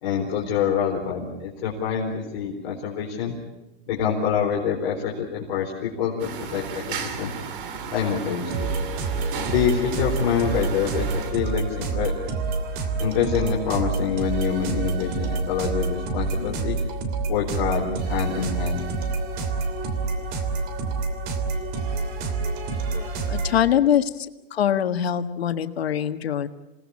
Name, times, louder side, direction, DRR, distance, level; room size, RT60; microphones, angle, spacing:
voice 1, 0.0-3.3 3.9-7.3 7.9-8.7 9.5-12.1 13.0-16.8 17.3-18.9, left 7 dB, 45° left, -3 dB, 4.5 m, -26 dB
sound 1, 6.2-11.3, right 6 dB, 60° right, 3.5 m, -34 dB
sound 2, 8.5-23.6, right 3 dB, 30° right, 3.0 m, -28 dB
voice 2, 22.9-24.3 24.5-26.5, left 10 dB, 85° left, 10 dB, 1.6 m, -23 dB
27.5 x 18.5 x 8.6 m, 1.0 s
hypercardioid pair, 155°, 30 cm